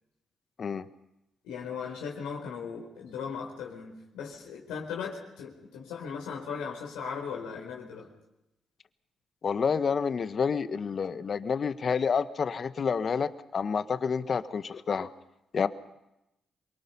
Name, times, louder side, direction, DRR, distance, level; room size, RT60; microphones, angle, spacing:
voice 1, 1.4-8.1, left 6 dB, 80° left, -1 dB, 4.4 m, -38 dB
voice 2, 9.4-15.1 15.5-15.7, left 6 dB, 55° left, 12 dB, 1.4 m, -29 dB
28.0 x 23.5 x 5.6 m, 0.89 s
hypercardioid pair, 40°, 0 cm